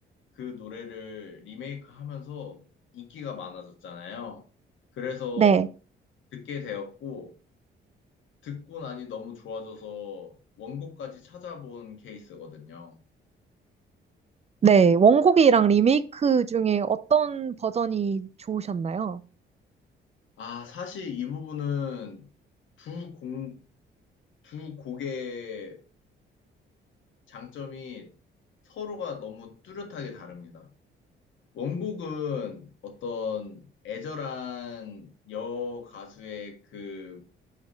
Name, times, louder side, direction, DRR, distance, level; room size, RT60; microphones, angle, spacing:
voice 1, 0.4-2.6 2.9-4.4 4.9-5.6 6.3-7.3 8.4-12.9 20.4-22.3 22.8-23.6 24.4-25.8 27.3-28.1 28.7-30.7 31.5-37.2, left 6 dB, 75° left, 1.7 m, -37 dB
voice 2, 14.6-19.2, right 6 dB, 35° right, 0.4 m, -21 dB
4.9 x 4.1 x 5.2 m
cardioid pair, 90°, 20 cm